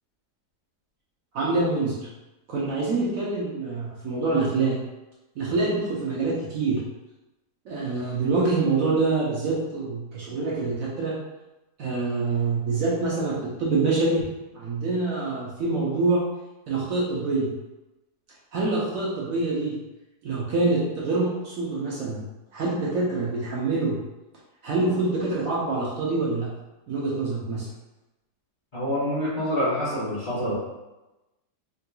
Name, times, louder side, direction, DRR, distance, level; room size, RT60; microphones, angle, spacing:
voice 1, 1.3-2.1 2.5-4.8 5.4-6.8 7.7-11.1 11.8-14.3 14.5-16.2 16.7-17.5 18.5-19.8 20.2-22.2 22.5-24.0 24.6-26.5 26.9-27.7, right 3 dB, 65° right, -6 dB, 1.0 m, -25 dB
voice 2, 28.7-30.6, equal, 35° left, -11 dB, 1.0 m, -26 dB
3.7 x 2.8 x 2.2 m, 1.0 s
omnidirectional pair, 1.7 m